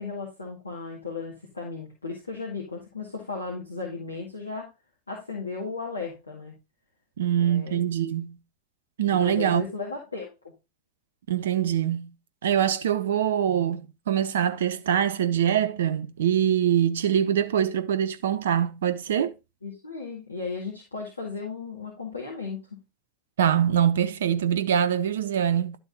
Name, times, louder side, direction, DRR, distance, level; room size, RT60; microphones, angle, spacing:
voice 1, 0.0-4.7 5.1-6.5 7.4-7.8 9.1-10.5 19.6-22.7, left 4 dB, 80° left, 2.0 m, -35 dB
voice 2, 7.2-8.4 9.0-9.6 11.3-12.1 12.4-19.3 23.4-25.8, right 9 dB, 60° right, 0.6 m, -24 dB
11.5 x 4.0 x 3.9 m
figure-of-eight pair, 90°, 0 cm